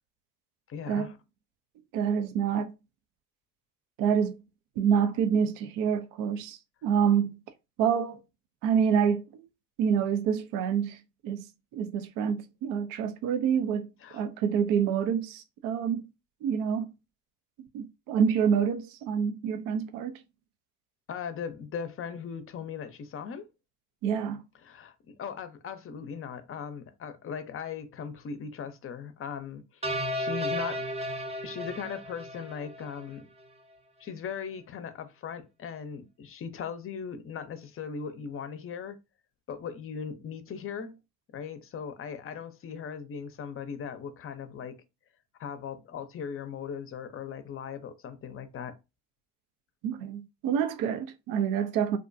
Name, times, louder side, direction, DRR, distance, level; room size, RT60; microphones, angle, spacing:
voice 1, 0.7-1.2 14.0-14.3 21.1-23.5 24.6-29.8 30.1-30.8 31.4-33.3 34.0-39.0 39.5-41.0 41.3-44.8 45.4-48.8, left 7 dB, 40° left, 0.6 m, -38 dB
voice 2, 1.9-2.7 4.0-4.4 4.8-7.4 7.8-8.2 8.6-9.4 9.8-11.0 11.2-13.9 14.1-16.0 16.4-16.9 17.6-20.2 24.0-24.4 49.8-52.0, right 7 dB, 65° right, 0.5 m, -27 dB
sound 1, 29.8-33.1, equal, 20° right, 0.6 m, -34 dB
2.5 x 2.1 x 2.5 m
hypercardioid pair, 55°, 36 cm